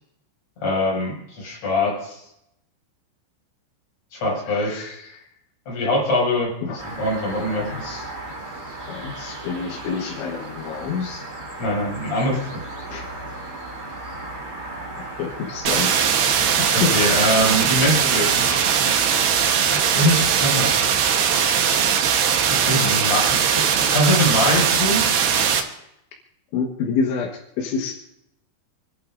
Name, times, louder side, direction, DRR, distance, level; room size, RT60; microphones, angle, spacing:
voice 1, 0.6-2.2 4.1-4.8 5.7-7.8 11.6-12.6 16.5-18.5 19.9-20.7 22.5-25.0, left 1 dB, 35° left, -4 dB, 7.5 m, -23 dB
voice 2, 4.5-5.3 6.6-6.8 7.4-8.1 8.9-11.2 12.9-13.1 15.2-16.0 16.8-17.1 26.5-27.3 27.6-27.9, left 5 dB, 80° left, 0 dB, 3.9 m, -28 dB
sound 1, 6.8-17.8, right 2 dB, 20° right, 2.0 m, -36 dB
sound 2, 15.7-25.6, right 7 dB, 70° right, 2.8 m, -20 dB
29.0 x 12.0 x 2.6 m, 0.80 s
omnidirectional pair, 5.3 m